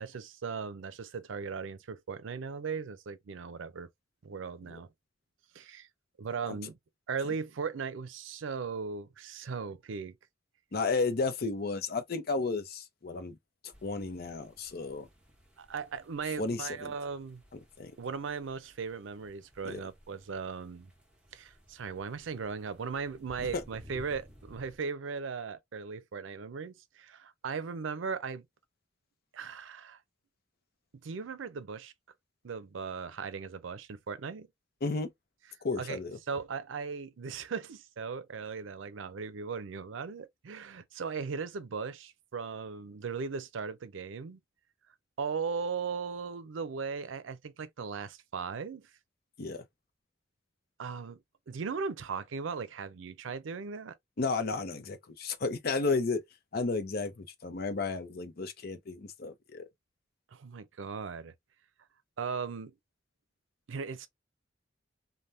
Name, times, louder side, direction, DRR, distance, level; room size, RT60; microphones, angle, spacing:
voice 1, 0.0-3.9 4.2-4.9 5.5-5.9 6.2-6.8 7.1-10.2 15.6-17.4 18.0-20.9 21.3-28.5 29.3-30.0 31.0-31.9 32.4-34.5 35.8-36.0 36.3-44.4 45.2-48.9 50.8-51.2 51.5-53.9 60.3-61.3 62.2-62.7 63.7-64.1, right 5 dB, 85° right, 0.5 m, -38 dB
voice 2, 10.7-13.4 13.8-15.1 16.4-16.9 17.8-17.9 19.6-19.8 23.5-23.6 34.8-35.1 35.6-36.2 49.4-49.6 54.2-56.2 56.5-59.6, left 3 dB, 55° left, 0.6 m, -33 dB
sound 1, 13.7-24.8, equal, 5° right, 0.9 m, -56 dB
3.3 x 2.2 x 2.6 m
head